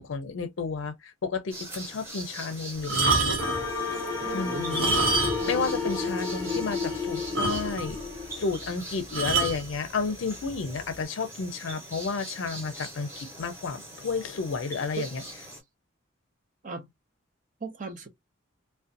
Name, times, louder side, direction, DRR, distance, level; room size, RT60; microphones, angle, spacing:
voice 1, 0.0-3.3 4.3-8.0 8.3-15.2, left 4 dB, 70° left, 0.5 m, -32 dB
sound 1, 1.5-15.6, right 1 dB, 15° right, 0.9 m, -42 dB
sound 2, 2.8-3.7 4.6-5.6 5.9-6.0 6.5-6.6 6.9-7.0 7.3-8.0 9.1-9.6 10.5-10.7, right 3 dB, 80° right, 0.9 m, -26 dB
sound 3, 3.4-8.7, left 4 dB, 15° left, 0.9 m, -32 dB
voice 2, 4.2-4.9 15.0-15.1 16.6-16.9 17.6-18.1, right 4 dB, 40° right, 0.5 m, -37 dB
2.5 x 2.1 x 2.5 m
head